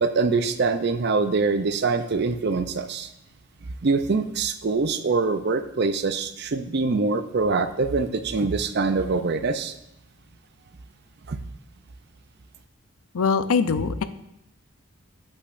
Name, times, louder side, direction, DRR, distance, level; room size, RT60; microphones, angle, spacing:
voice 1, 0.0-3.1 3.8-9.7 11.3-11.4, right 4 dB, 50° right, 9 dB, 0.5 m, -24 dB
voice 2, 13.1-14.0, left 5 dB, 80° left, 11 dB, 0.5 m, -22 dB
8.4 x 8.3 x 2.5 m, 0.81 s
head